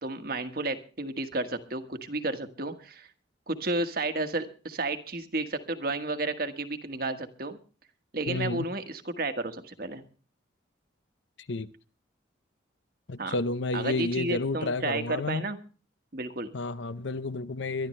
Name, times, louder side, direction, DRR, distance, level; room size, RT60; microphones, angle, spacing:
voice 1, 0.0-3.1 3.5-7.6 8.1-10.0 13.2-13.3 13.7-15.6 16.1-16.5, right 2 dB, 50° right, 1.4 m, -32 dB
voice 2, 8.3-8.7 11.5-11.7 13.1-15.4 16.5-17.9, left 2 dB, 70° left, 0.7 m, -31 dB
22.5 x 12.0 x 3.2 m
head